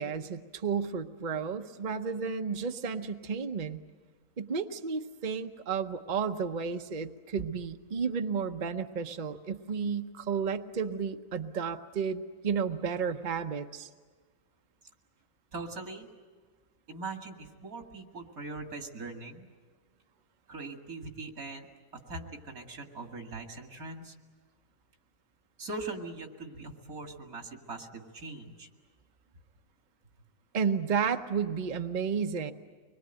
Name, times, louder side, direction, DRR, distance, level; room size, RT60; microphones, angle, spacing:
voice 1, 0.0-3.8 4.4-13.9 30.5-32.5, right 6 dB, 40° right, 6 dB, 0.9 m, -32 dB
voice 2, 15.5-16.1 16.9-19.5 20.5-21.7 22.1-24.1 25.6-28.7, right 3 dB, 80° right, 4 dB, 2.6 m, -41 dB
25.0 x 21.5 x 8.9 m, 1.5 s
omnidirectional pair, 1.5 m